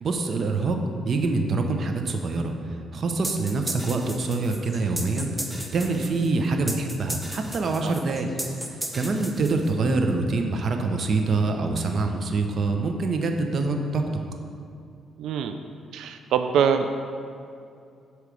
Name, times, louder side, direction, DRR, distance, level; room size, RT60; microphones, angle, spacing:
voice 1, 0.0-0.8 1.0-2.5 2.9-5.3 5.7-8.3 8.9-14.0, right 3 dB, 50° right, 4 dB, 0.7 m, -25 dB
sound 1, 3.2-9.9, right 1 dB, 5° right, 0.8 m, -35 dB
voice 2, 15.2-15.6 15.9-17.0, right 7 dB, 80° right, 7 dB, 0.3 m, -24 dB
8.3 x 3.2 x 6.2 m, 2.5 s
cardioid pair, 90°, 0 cm